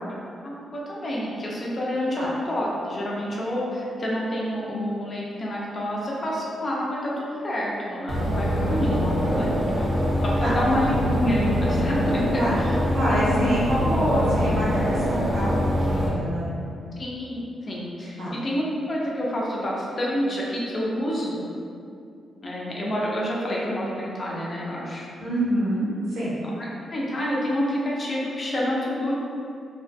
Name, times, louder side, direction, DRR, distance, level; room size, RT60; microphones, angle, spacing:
voice 1, 0.4-9.9 10.2-12.8 13.2-13.3 17.0-21.4 22.4-25.1 26.6-29.2, equal, 35° left, -5 dB, 0.5 m, -28 dB
sound 1, 8.1-16.1, equal, 25° right, 0.6 m, -24 dB
voice 2, 12.9-15.6 15.9-16.5 18.2-18.3 25.2-26.3, equal, 90° right, -10 dB, 1.0 m, -26 dB
2.3 x 2.3 x 2.5 m, 2.5 s
cardioid pair, 120°, 0 cm